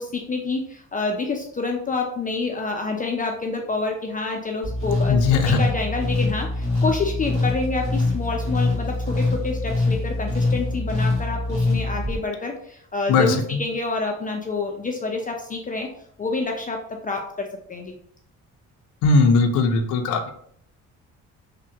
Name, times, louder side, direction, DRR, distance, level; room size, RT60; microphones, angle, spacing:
voice 1, 0.0-15.9 16.2-18.0, left 3 dB, 30° left, 2 dB, 0.4 m, -28 dB
sound 1, 4.6-12.2, left 2 dB, 45° right, 1.5 m, -24 dB
voice 2, 5.1-5.6 13.1-13.6 19.0-20.3, left 4 dB, 85° left, 6 dB, 0.5 m, -19 dB
3.1 x 2.1 x 2.7 m, 0.65 s
cardioid pair, 90°, 30 cm